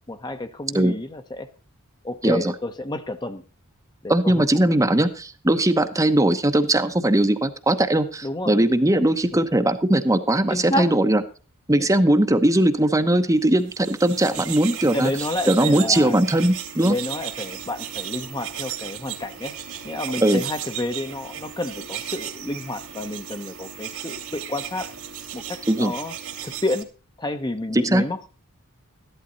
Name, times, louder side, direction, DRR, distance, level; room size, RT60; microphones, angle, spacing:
voice 1, 0.1-1.5 2.0-3.4 4.0-4.5 8.2-8.6 10.5-10.9 11.8-11.9 14.8-16.2 16.8-19.5 19.8-24.9 25.3-26.1 26.4-26.9 27.2-28.2, left 1 dB, 20° left, 8 dB, 0.9 m, -30 dB
voice 2, 4.1-11.2 11.7-15.1 15.5-17.0 20.2-20.4 25.7-25.9 27.7-28.0, right 1 dB, 15° right, 8 dB, 0.9 m, -19 dB
sound 1, 13.6-26.8, right 10 dB, 70° right, 2.4 m, -35 dB
14.0 x 11.5 x 4.0 m, 0.35 s
head